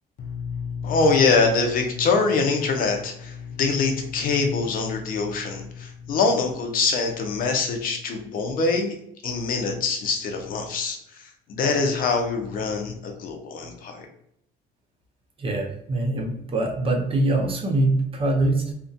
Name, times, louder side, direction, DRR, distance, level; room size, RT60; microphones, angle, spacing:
voice 1, 0.2-8.9 9.2-14.1, left 4 dB, 55° left, 3 dB, 0.5 m, -24 dB
voice 2, 15.4-18.7, right 2 dB, 35° right, 1 dB, 0.6 m, -23 dB
2.3 x 2.1 x 2.6 m, 0.74 s
cardioid pair, 110°, 17 cm